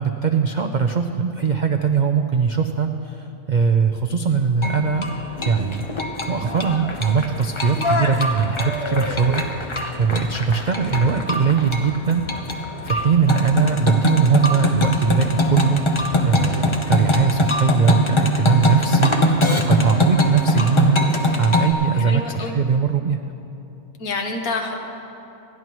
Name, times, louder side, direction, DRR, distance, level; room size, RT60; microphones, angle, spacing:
voice 1, 0.0-5.1 5.4-5.9 6.3-15.8 16.2-19.4 19.7-21.1 21.4-23.2, right 6 dB, 85° right, 6 dB, 0.4 m, -21 dB
sound 1, 4.6-21.7, left 1 dB, 25° left, 0.7 m, -22 dB
sound 2, 9.1-9.2 9.5-10.5 10.8-11.1 11.4-11.8 12.1-13.0 13.4-13.7 14.0-14.3 14.7-15.0 15.4-17.4, equal, 45° right, 1.9 m, -39 dB
voice 2, 22.0-22.6 24.0-24.8, left 3 dB, 75° left, 3 dB, 1.6 m, -27 dB
27.5 x 11.0 x 3.1 m, 2.9 s
omnidirectional pair, 1.5 m